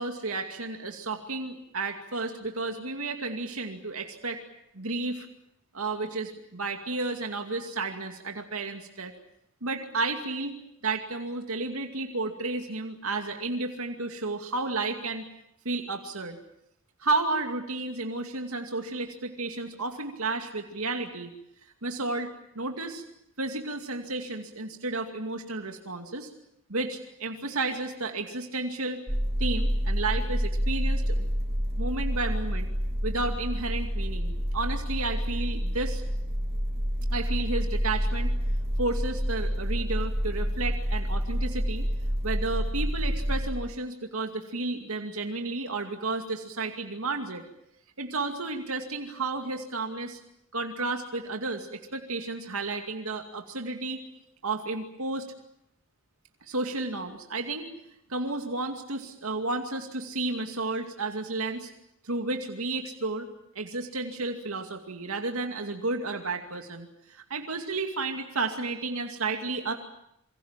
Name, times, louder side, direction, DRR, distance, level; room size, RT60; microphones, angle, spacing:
voice 1, 0.0-4.4 4.7-5.3 5.7-9.1 9.6-15.2 15.6-16.4 17.0-21.3 21.8-23.0 23.4-26.3 26.7-29.0 29.4-31.3 31.8-32.7 33.0-36.0 37.1-38.4 38.8-41.8 42.2-47.4 48.0-50.2 50.5-54.0 54.4-55.3 56.4-57.7 58.1-61.7 62.0-63.3 63.5-69.7, right 3 dB, 85° right, 4 dB, 2.5 m, -32 dB
sound 1, 29.1-43.5, equal, 30° right, 6.0 m, -28 dB
27.5 x 24.0 x 7.4 m, 0.76 s
head